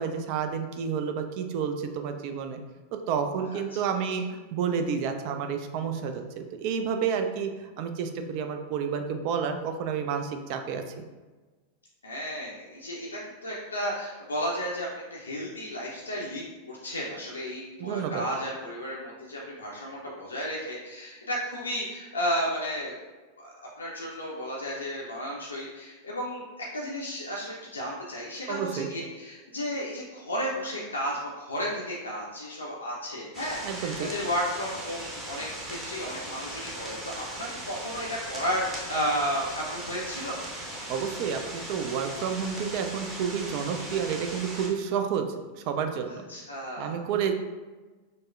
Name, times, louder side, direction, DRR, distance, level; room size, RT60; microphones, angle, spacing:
voice 1, 0.0-2.6 3.1-10.8 17.8-18.2 28.5-28.9 33.6-34.1 40.9-45.3 45.5-46.3 46.8-47.3, right 7 dB, 45° right, 6 dB, 0.3 m, -30 dB
voice 2, 12.0-22.9 23.4-23.5 23.8-40.4 46.3-47.0, equal, 75° left, -5 dB, 0.5 m, -33 dB
sound 1, 33.3-44.7, right 1 dB, 15° right, 1.0 m, -38 dB
5.2 x 2.0 x 2.4 m, 1.3 s
figure-of-eight pair, 90°, 0 cm